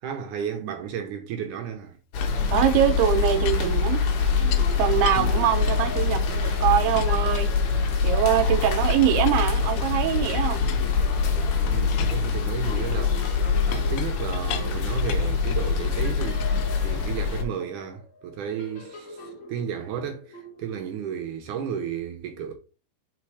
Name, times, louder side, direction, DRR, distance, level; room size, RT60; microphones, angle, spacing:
voice 1, 0.0-2.0 8.6-8.7 11.6-13.3 13.6-16.5 16.8-22.5, right 8 dB, 70° right, 2.1 m, -33 dB
sound 1, 2.1-17.4, left 5 dB, 65° left, 2.3 m, -24 dB
Chink clink, 2.2-4.7 5.1-6.5 6.9-8.2 8.9-11.2 11.7-15.7 16.2-17.4, left 10 dB, 80° left, 2.4 m, -40 dB
voice 2, 2.5-4.0 4.8-7.5 8.0-10.6, right 11 dB, 90° right, 2.8 m, -23 dB
sound 2, 4.4-9.7 10.4-12.0 12.6-20.9, left 1 dB, 45° left, 1.9 m, -43 dB
5.7 x 4.3 x 4.7 m
omnidirectional pair, 4.3 m